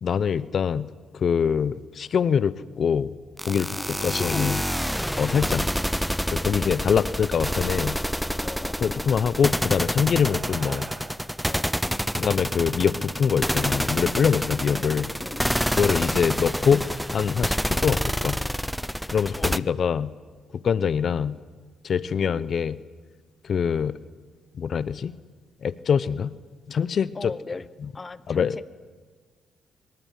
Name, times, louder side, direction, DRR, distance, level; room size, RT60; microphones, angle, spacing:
voice 1, 0.0-3.1 3.4-4.6 5.2-5.6 6.3-8.0 8.8-10.9 12.2-15.1 15.8-18.4 19.1-20.1 20.5-21.4 21.8-22.8 23.4-24.0 24.5-25.1 25.6-26.3 26.7-27.3 28.3-28.7, left 7 dB, 55° left, 16 dB, 0.8 m, -24 dB
sound 1, 3.4-19.6, equal, ahead, 0.8 m, -28 dB
voice 2, 3.7-4.7 6.6-7.1 8.4-9.2 11.5-12.1 14.7-16.1 19.3-19.6 22.2-22.4 27.1-27.7 27.9-28.7, left 3 dB, 25° left, 15 dB, 1.2 m, -38 dB
sound 2, 9.3-14.1, right 5 dB, 45° right, 2.9 m, -48 dB
24.5 x 23.5 x 9.3 m, 1.4 s
cardioid pair, 90°, 0 cm